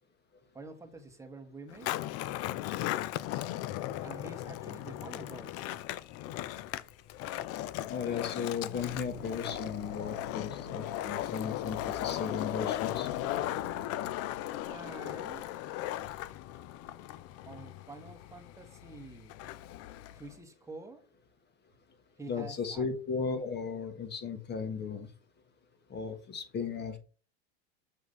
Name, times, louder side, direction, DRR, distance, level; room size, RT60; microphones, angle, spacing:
voice 1, 0.5-1.9 4.0-5.7 14.6-15.5 17.4-19.3 20.1-21.1 22.2-22.9, right 2 dB, 10° right, 1.3 m, -47 dB
Skateboard, 1.7-20.3, left 14 dB, 50° left, 0.5 m, -37 dB
voice 2, 7.9-13.1 22.3-25.1 25.9-27.0, left 6 dB, 30° left, 1.6 m, -36 dB
sound 1, 8.7-15.4, equal, 80° left, 2.6 m, -50 dB
6.7 x 2.9 x 5.5 m
hypercardioid pair, 100°, 32 cm